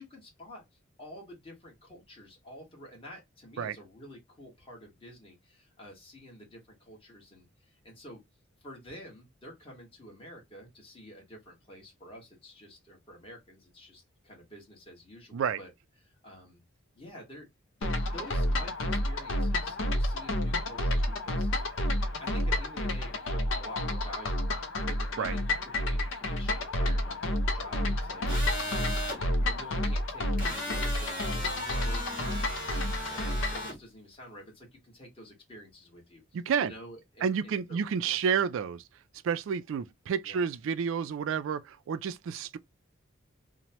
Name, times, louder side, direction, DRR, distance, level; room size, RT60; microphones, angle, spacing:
voice 1, 0.0-8.2 8.6-15.7 16.0-16.6 16.9-17.5 17.8-21.6 22.2-24.5 24.9-38.2 40.2-40.4, equal, 25° left, 1.3 m, -49 dB
sound 1, 17.8-33.7, left 1 dB, 70° left, 0.6 m, -30 dB
sound 2, 28.3-29.2 30.4-33.7, equal, 45° left, 1.5 m, -37 dB
voice 2, 36.3-36.7 37.2-38.8 39.2-42.6, right 7 dB, 70° right, 0.3 m, -30 dB
3.0 x 2.1 x 2.8 m
head